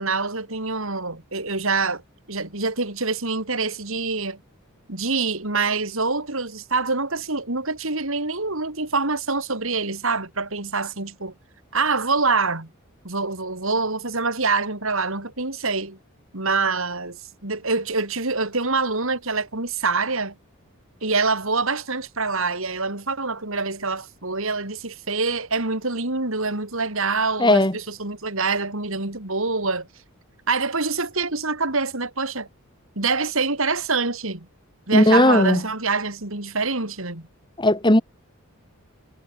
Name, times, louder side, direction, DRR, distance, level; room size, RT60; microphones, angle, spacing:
voice 1, 0.0-2.0 2.3-4.4 4.9-11.3 11.7-12.7 13.0-16.0 16.3-20.3 21.0-29.9 30.5-32.5 33.0-34.5 34.9-37.3, right 4 dB, 65° right, 3.6 m, -25 dB
voice 2, 27.4-27.7 34.9-35.6 37.6-38.0, left 1 dB, 20° left, 2.1 m, -16 dB
head